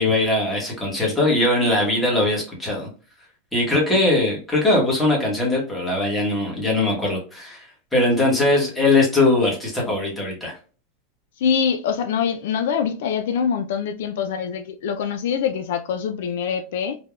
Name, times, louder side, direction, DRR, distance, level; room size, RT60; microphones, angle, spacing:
voice 1, 0.0-2.9 3.5-7.7 7.9-10.5, left 2 dB, 5° left, 1.0 m, -20 dB
voice 2, 11.4-17.0, left 7 dB, 70° left, 0.3 m, -24 dB
3.3 x 2.1 x 2.3 m
supercardioid pair, 170°, 0 cm